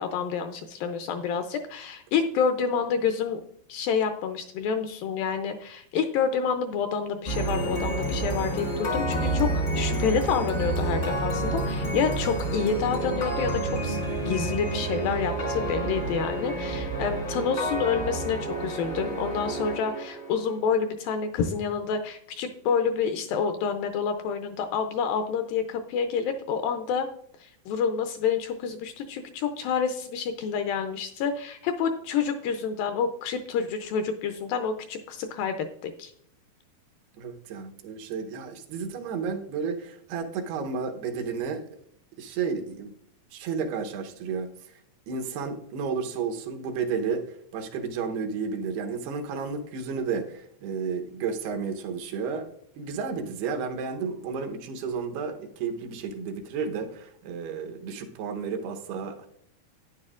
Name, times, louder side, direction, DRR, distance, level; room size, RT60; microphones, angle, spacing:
voice 1, 0.0-3.4 3.7-27.1 27.4-36.1, left 6 dB, 80° left, 7 dB, 2.1 m, -28 dB
Awakening Game Polychord phase, 7.3-20.5, right 2 dB, 55° left, 0.8 m, -29 dB
voice 2, 37.1-41.7 42.2-42.9 43.3-44.7 45.1-52.5 52.7-59.3, right 5 dB, 85° right, 5 dB, 3.0 m, -32 dB
10.5 x 9.8 x 2.4 m, 0.69 s
omnidirectional pair, 4.5 m